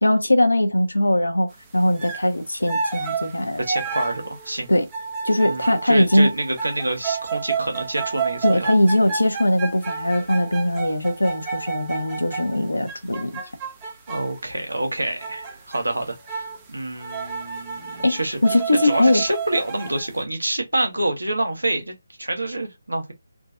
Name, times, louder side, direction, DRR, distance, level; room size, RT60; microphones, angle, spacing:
voice 1, 0.0-3.6 4.7-4.9 5.2-6.3 8.4-13.4 18.0-19.2, left 1 dB, 80° left, 0.9 m, -20 dB
sound 1, 2.0-2.3 2.7-14.4 15.2-15.8 16.2-16.6 17.0-20.1, right 5 dB, 15° right, 0.9 m, -31 dB
voice 2, 3.6-4.7 5.4-8.7 14.1-23.1, right 1 dB, 80° right, 1.5 m, -27 dB
3.8 x 2.7 x 2.5 m
figure-of-eight pair, 150°, 0 cm